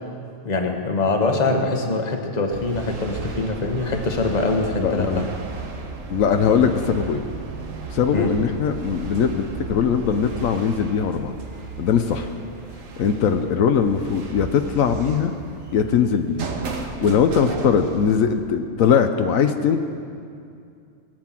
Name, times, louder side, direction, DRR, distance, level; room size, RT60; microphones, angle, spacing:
voice 1, 0.4-5.2 8.1-8.3, left 3 dB, 35° left, 3 dB, 1.3 m, -23 dB
sound 1, 2.5-18.1, right 4 dB, 70° right, 1.6 m, -35 dB
voice 2, 4.8-5.3 6.1-7.2 7.9-11.3 11.8-12.3 13.0-15.3 15.7-16.4 16.8-19.8, left 7 dB, 80° left, 7 dB, 1.1 m, -20 dB
19.5 x 7.9 x 7.4 m, 2.4 s
omnidirectional pair, 1.4 m